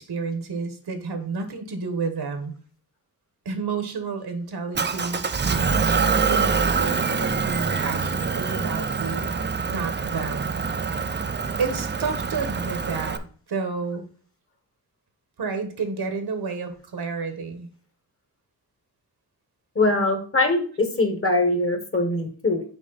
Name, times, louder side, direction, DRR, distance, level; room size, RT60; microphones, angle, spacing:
voice 1, 0.0-2.5 3.4-9.3 9.7-10.5 10.8-11.0 11.6-13.2 13.5-14.0 15.4-17.7, right 4 dB, 80° right, 7 dB, 1.3 m, -30 dB
Motor vehicle (road) / Engine, 4.7-13.2, right 5 dB, 30° right, 0.5 m, -25 dB
voice 2, 19.7-22.6, left 2 dB, 35° left, 6 dB, 1.3 m, -22 dB
6.2 x 5.0 x 4.0 m, 0.43 s
wide cardioid pair, 135°, 38 cm